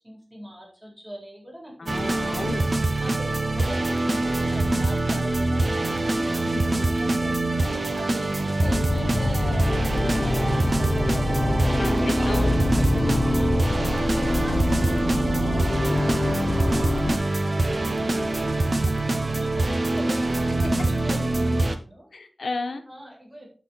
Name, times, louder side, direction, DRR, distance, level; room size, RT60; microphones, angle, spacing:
voice 1, 0.0-1.9 2.3-22.2 22.9-23.5, equal, 5° right, -2 dB, 3.8 m, -41 dB
voice 2, 1.8-2.6 6.2-6.5 11.8-13.0 13.9-14.6 22.1-22.8, left 3 dB, 70° left, 6 dB, 1.2 m, -34 dB
sound 1, 1.9-21.7, right 2 dB, 45° right, 0.9 m, -24 dB
sound 2, 8.6-17.2, left 2 dB, 50° left, 0.7 m, -26 dB
11.5 x 4.3 x 4.2 m, 0.39 s
wide cardioid pair, 75°, 0 cm